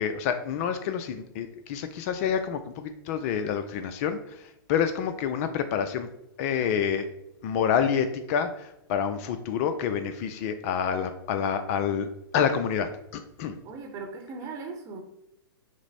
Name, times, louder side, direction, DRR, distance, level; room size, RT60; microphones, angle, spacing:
voice 1, 0.0-6.1 6.4-7.1 7.4-12.1 12.3-13.6, left 7 dB, 40° left, 9 dB, 0.4 m, -28 dB
voice 2, 13.6-15.0, right 4 dB, 25° right, 4 dB, 0.9 m, -38 dB
5.9 x 2.0 x 4.1 m, 0.83 s
hypercardioid pair, 125°, 13 cm